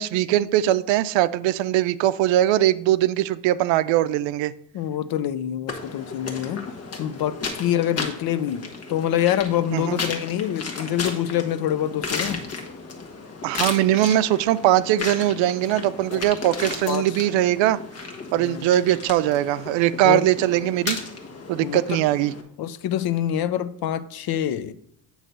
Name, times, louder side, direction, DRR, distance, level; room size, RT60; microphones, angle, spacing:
voice 1, 0.0-4.5 9.7-10.0 13.4-17.8 18.3-21.0 21.5-22.3, right 13 dB, 70° right, 0.6 m, -21 dB
voice 2, 4.7-6.6 7.0-12.4 16.1-16.2 16.9-17.1 18.3-18.6 20.0-20.2 21.6-22.0 22.6-24.7, left 11 dB, 50° left, 0.6 m, -26 dB
sound 1, 5.7-22.4, left 4 dB, 30° left, 1.5 m, -34 dB
9.0 x 3.2 x 6.6 m
cardioid pair, 130°, 46 cm